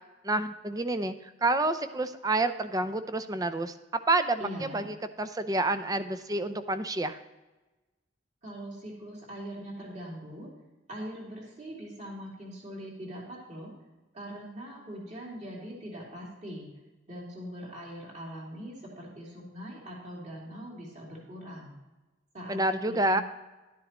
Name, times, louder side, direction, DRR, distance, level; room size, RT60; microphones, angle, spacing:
voice 1, 0.2-1.1 1.4-3.7 4.1-7.2 22.5-23.2, right 2 dB, 20° right, 10 dB, 0.5 m, -28 dB
voice 2, 4.4-4.9 8.4-10.5 10.9-13.7 14.1-16.7 17.1-21.7 22.3-23.2, equal, 35° right, -4 dB, 2.9 m, -42 dB
12.0 x 10.5 x 3.0 m, 1.1 s
head